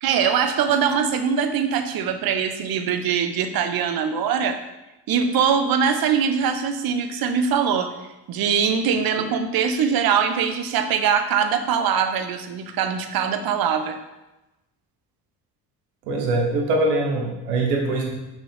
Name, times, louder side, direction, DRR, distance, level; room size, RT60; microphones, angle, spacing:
voice 1, 0.0-4.6 5.1-7.9 8.3-14.0, right 7 dB, 50° right, 7 dB, 0.9 m, -22 dB
voice 2, 16.1-18.1, right 2 dB, 80° right, 0 dB, 1.1 m, -22 dB
6.1 x 5.3 x 3.5 m, 0.98 s
hypercardioid pair, 50°, 45 cm